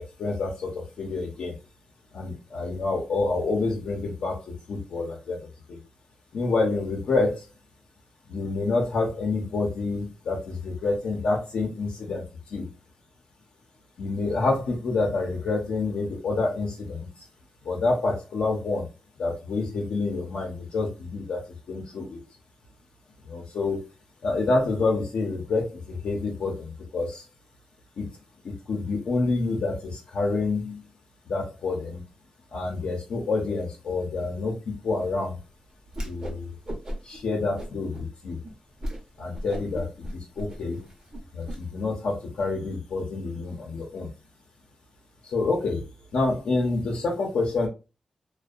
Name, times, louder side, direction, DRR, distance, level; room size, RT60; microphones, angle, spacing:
voice 1, 0.0-1.6 2.1-5.8 6.3-7.5 8.3-12.7 14.0-17.3 17.6-18.9 19.2-22.2 23.2-23.9 24.2-27.3 28.0-28.1 28.4-30.9 31.3-32.0 32.5-35.4 36.0-36.6 37.0-38.4 39.2-40.8 41.3-44.1 45.2-47.7, left 3 dB, 80° left, -2 dB, 0.6 m, -28 dB
Whoosh swoosh swish, 35.9-36.4 36.7-37.2 37.6-38.1 38.4-38.5 38.8-39.0 39.3-41.6, equal, 35° right, 0.7 m, -35 dB
2.5 x 2.2 x 2.3 m, 0.29 s
wide cardioid pair, 110°, 2 cm